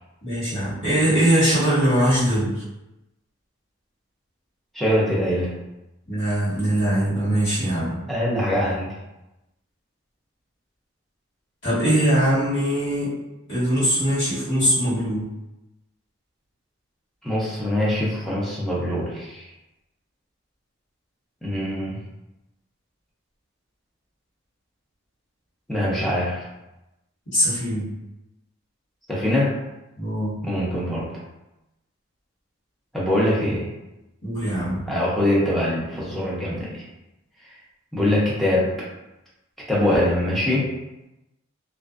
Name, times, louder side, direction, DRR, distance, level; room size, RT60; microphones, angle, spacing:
voice 1, 0.2-2.6 6.1-8.0 11.6-13.1 13.5-15.2 27.3-27.9 30.0-30.4 34.2-34.8, equal, 55° left, -12 dB, 1.4 m, -21 dB
voice 2, 4.7-5.5 8.1-8.9 17.2-19.4 21.4-22.0 25.7-26.5 29.1-29.6 30.4-31.1 32.9-33.7 34.9-36.8 37.9-38.8 39.7-40.7, left 1 dB, ahead, -7 dB, 0.5 m, -23 dB
2.5 x 2.1 x 2.3 m, 0.96 s
head